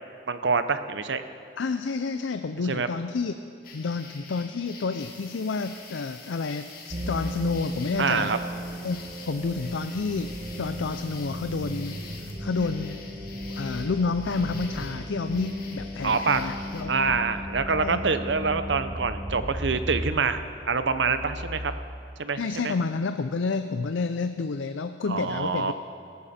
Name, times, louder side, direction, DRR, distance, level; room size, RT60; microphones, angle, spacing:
voice 1, 0.3-1.2 2.7-2.9 8.0-8.4 16.0-16.4 16.9-20.4 20.7-21.7 22.2-22.7 25.1-25.7, right 4 dB, 70° right, 11 dB, 0.8 m, -26 dB
voice 2, 1.6-3.3 3.7-8.3 8.8-9.0 9.3-12.0 12.4-13.0 13.5-17.1 17.8-18.0 22.4-25.7, left 4 dB, 85° left, 9 dB, 0.5 m, -30 dB
sound 1, 3.6-16.8, left 4 dB, 50° left, 2.1 m, -47 dB
sound 2, 5.0-12.3, left 4 dB, 20° left, 2.0 m, -51 dB
sound 3, 6.9-21.7, equal, 35° right, 1.3 m, -35 dB
18.0 x 14.0 x 4.3 m, 2.8 s
head